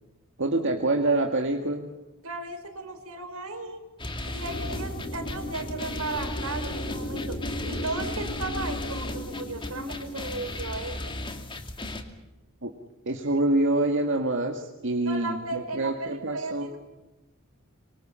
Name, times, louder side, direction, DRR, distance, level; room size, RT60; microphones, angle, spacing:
voice 1, 0.4-1.9 12.6-12.7 13.1-16.7, right 2 dB, 60° right, 2 dB, 2.0 m, -26 dB
voice 2, 2.2-3.8 4.3-7.4 7.6-11.2 15.1-16.8, right 2 dB, 80° right, 6 dB, 5.3 m, -35 dB
sound 1, 4.0-12.0, left 2 dB, 25° left, 2.4 m, -36 dB
sound 2, 4.4-11.0, left 1 dB, 40° left, 5.0 m, -36 dB
26.0 x 25.0 x 5.7 m, 1.1 s
head